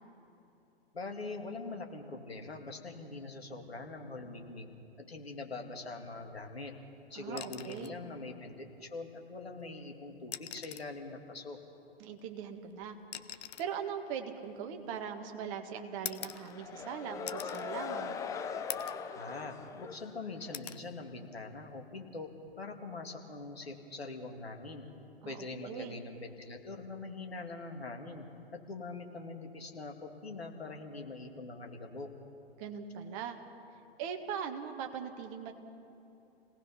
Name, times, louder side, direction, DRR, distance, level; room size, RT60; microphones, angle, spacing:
voice 1, 0.9-6.7 7.1-8.5 8.8-11.6 19.1-24.9 25.2-28.3 28.5-32.1, left 3 dB, 70° left, 3 dB, 2.7 m, -43 dB
voice 2, 7.2-8.0 12.0-13.0 13.6-18.2 25.2-26.0 32.6-33.4 34.0-35.5, right 7 dB, 30° right, 5 dB, 1.8 m, -40 dB
sound 1, 7.3-8.0 9.4-9.5 10.2-11.0 12.2-15.2 16.0-16.9 17.3-17.7 18.1-18.2 18.7-19.1 19.5-20.1 20.5-20.9 22.3-22.5, left 11 dB, 40° left, 0.8 m, -44 dB
sound 2, 16.1-20.6, left 6 dB, 10° left, 0.6 m, -41 dB
28.5 x 18.5 x 5.8 m, 2.8 s
figure-of-eight pair, 115°, 32 cm